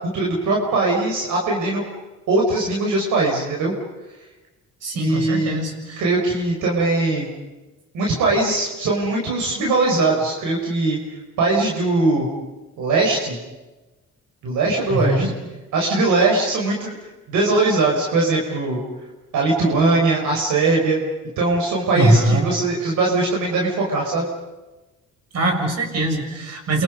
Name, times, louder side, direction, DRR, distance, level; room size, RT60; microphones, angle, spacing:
voice 1, 0.1-1.8 2.3-3.7 4.9-5.6 6.0-7.3 7.9-11.0 11.4-12.3 12.8-13.4 14.4-15.3 15.7-16.9 17.3-18.8 19.3-21.0 21.4-24.2, right 3 dB, 80° right, -1 dB, 5.7 m, -20 dB
voice 2, 4.8-6.0 14.9-15.3 21.9-22.5 25.3-26.8, right 1 dB, 55° right, 3 dB, 7.2 m, -21 dB
30.0 x 27.0 x 5.5 m, 1.1 s
cardioid pair, 90°, 30 cm